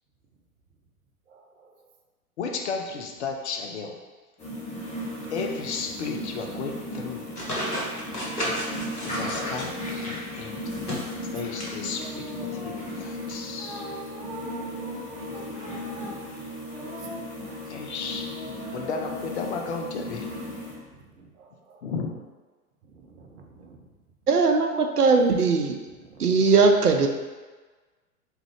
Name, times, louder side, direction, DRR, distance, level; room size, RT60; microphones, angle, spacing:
voice 1, 1.3-1.7 10.7-10.9 11.2-11.4 14.4-15.6 18.4-18.5 20.4-21.8 22.8-23.9 26.0-26.4, right 6 dB, 50° right, 1 dB, 0.7 m, -46 dB
voice 2, 2.4-4.0 5.3-7.3 9.0-10.6 11.3-13.9 17.7-20.3 21.8-22.2, left 5 dB, 50° left, 3 dB, 0.6 m, -34 dB
sound 1, 4.4-20.7, left 1 dB, 15° left, 1.0 m, -36 dB
sound 2, 7.4-10.2 10.6-11.7 12.0-12.1 13.3-13.4, equal, 90° left, 1.1 m, -33 dB
sound 3, 11.9-13.0 13.5-17.8 18.3-19.1, right 1 dB, 10° right, 1.0 m, -42 dB
voice 3, 24.3-25.8 26.2-27.1, right 4 dB, 85° right, 5 dB, 0.6 m, -19 dB
3.6 x 3.3 x 3.2 m, 1.3 s
figure-of-eight pair, 105°, 45 cm